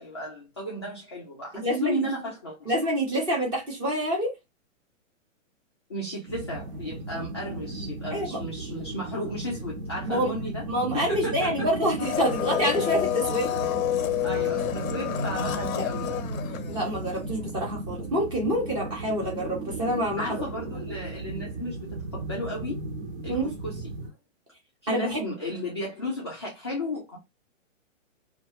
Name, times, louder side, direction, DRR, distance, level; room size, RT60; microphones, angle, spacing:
voice 1, 0.0-2.7 5.9-10.6 10.9-11.7 14.2-16.2 16.5-16.6 20.2-22.8 23.2-23.9 24.8-27.2, left 1 dB, 20° left, 0.3 m, -34 dB
voice 2, 1.5-2.0 2.7-4.3 8.1-8.4 10.0-10.3 10.7-13.6 16.7-20.4 23.3-23.5 24.9-25.2, equal, 10° right, 0.7 m, -27 dB
sound 1, 6.3-24.1, right 2 dB, 50° right, 1.0 m, -35 dB
Domestic sounds home sounds, 12.0-17.2 17.5-17.6, left 12 dB, 90° left, 0.6 m, -29 dB
2.4 x 2.2 x 2.8 m
hypercardioid pair, 150°, 40 cm